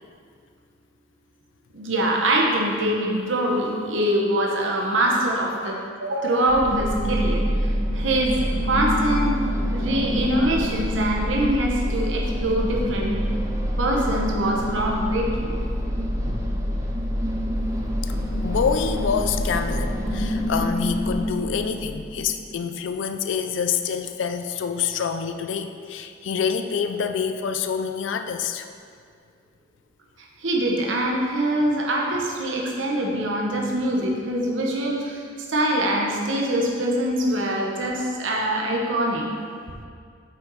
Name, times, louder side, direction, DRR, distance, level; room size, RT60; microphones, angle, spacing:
voice 1, 1.7-7.4 7.9-8.3 8.7-9.3 9.7-13.2 13.8-15.5 30.4-35.1 35.5-39.3, right 1 dB, 85° right, -2 dB, 0.9 m, -23 dB
sound 1, 6.5-22.4, equal, 15° right, 0.6 m, -26 dB
voice 2, 18.4-28.7, left 6 dB, 75° left, 8 dB, 0.4 m, -26 dB
5.8 x 5.7 x 4.0 m, 2.2 s
head